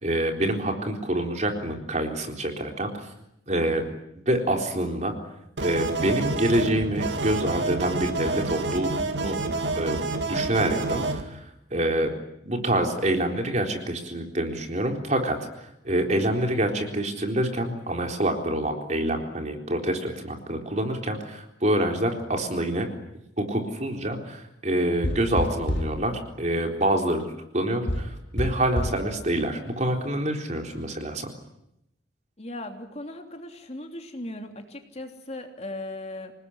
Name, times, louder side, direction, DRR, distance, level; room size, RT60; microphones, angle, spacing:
voice 1, 0.0-3.1 3.5-3.8 4.3-5.1 5.6-8.9 9.2-9.4 9.8-11.4 11.7-12.1 12.4-22.9 23.4-27.2 27.5-31.3, right 1 dB, 40° right, 3 dB, 4.0 m, -26 dB
sound 1, 5.6-11.2, right 3 dB, 90° right, 2.3 m, -28 dB
sound 2, 25.0-26.0 27.9-29.1, equal, 80° left, 5.9 m, -28 dB
voice 2, 32.4-36.3, left 1 dB, 35° left, 4 dB, 3.2 m, -38 dB
27.0 x 19.5 x 9.9 m, 0.83 s
head